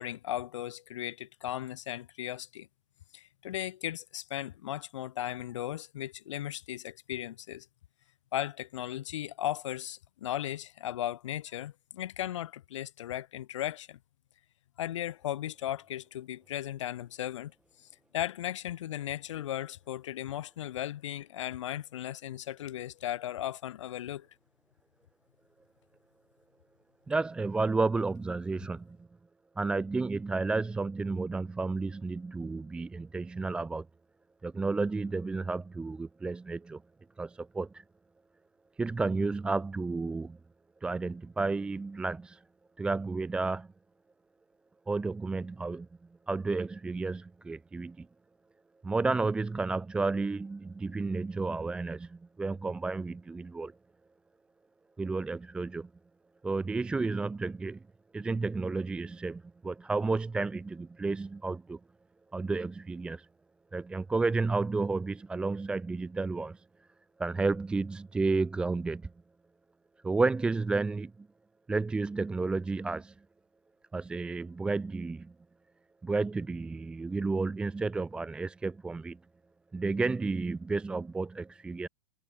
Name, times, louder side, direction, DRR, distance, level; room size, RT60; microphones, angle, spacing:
voice 1, 0.0-2.7 3.1-7.7 8.3-14.0 14.8-17.5 18.1-24.3, left 12 dB, 80° left, 0.8 m, -36 dB
voice 2, 27.1-29.0 29.6-33.9 34.4-36.8 37.2-37.8 38.8-40.4 40.8-42.4 42.8-43.7 44.9-45.9 46.3-48.1 48.8-53.7 55.0-55.9 56.4-57.8 58.1-61.8 62.3-63.3 63.7-66.6 67.2-69.1 70.0-71.3 71.7-73.1 73.9-75.3 76.0-79.2 79.7-81.9, right 3 dB, 5° right, 0.8 m, -31 dB
supercardioid pair, 165°, 15 cm